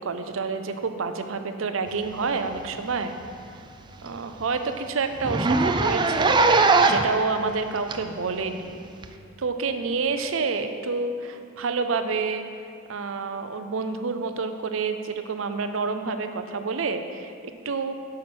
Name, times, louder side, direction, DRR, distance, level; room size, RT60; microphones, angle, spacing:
voice 1, 0.0-3.1 4.0-8.8 9.4-12.4 12.9-17.9, right 4 dB, 90° right, 8 dB, 0.6 m, -28 dB
Zipper (clothing), 2.6-2.8 3.1-3.2 3.6-3.7 4.0-4.1 4.4-4.5 5.2-7.2 7.9-8.0 9.0-9.1, right 3 dB, 25° right, 0.4 m, -20 dB
8.6 x 5.8 x 6.1 m, 2.4 s
head